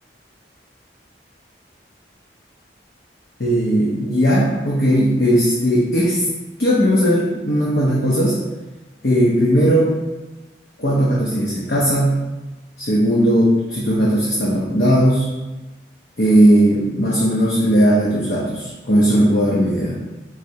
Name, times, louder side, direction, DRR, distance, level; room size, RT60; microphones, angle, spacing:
voice 1, 3.4-6.2 6.6-8.4 9.0-10.0 10.8-12.3 12.8-15.3 16.2-19.9, equal, 55° left, -5 dB, 0.7 m, -17 dB
4.8 x 3.1 x 2.7 m, 1.1 s
head